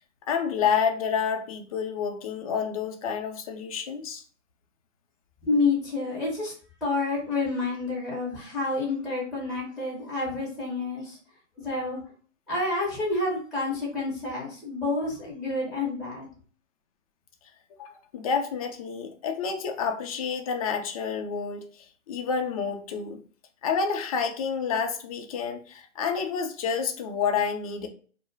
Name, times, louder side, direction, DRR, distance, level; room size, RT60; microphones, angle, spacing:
voice 1, 0.3-4.2 17.8-23.2 23.6-27.9, left 6 dB, 30° left, 4 dB, 0.4 m, -29 dB
voice 2, 5.4-6.5 6.8-11.2 11.6-12.0 12.5-16.3, left 3 dB, ahead, -7 dB, 0.9 m, -29 dB
2.3 x 2.1 x 3.2 m, 0.42 s
hypercardioid pair, 130°, 37 cm